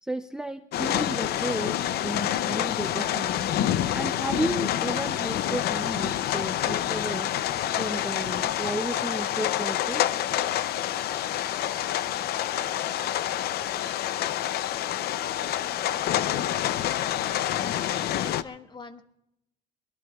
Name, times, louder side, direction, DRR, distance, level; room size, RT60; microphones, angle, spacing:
voice 1, 0.0-3.4 3.9-7.3 7.7-10.1, right 1 dB, 5° right, 9 dB, 0.6 m, -33 dB
sound 1, 0.7-18.4, left 12 dB, 70° left, 0.6 m, -27 dB
voice 2, 17.6-17.9 18.2-19.0, left 4 dB, 25° left, 8 dB, 1.3 m, -43 dB
24.0 x 20.0 x 2.4 m, 0.81 s
cardioid pair, 110°, 17 cm